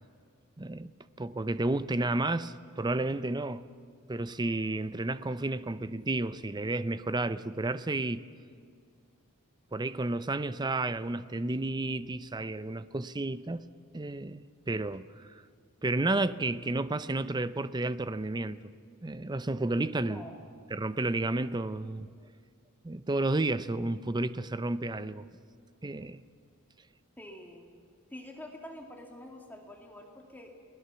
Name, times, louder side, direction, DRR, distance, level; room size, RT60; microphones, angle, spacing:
voice 1, 0.6-0.9 1.2-3.7 4.1-8.3 9.7-13.6 13.9-15.4 15.8-18.6 19.0-20.2 20.7-22.1 22.8-25.3 25.8-26.2, right 2 dB, 20° right, 0.5 m, -31 dB
voice 2, 27.2-27.8 28.1-30.5, left 1 dB, 10° left, 2.3 m, -46 dB
30.0 x 20.0 x 7.0 m
head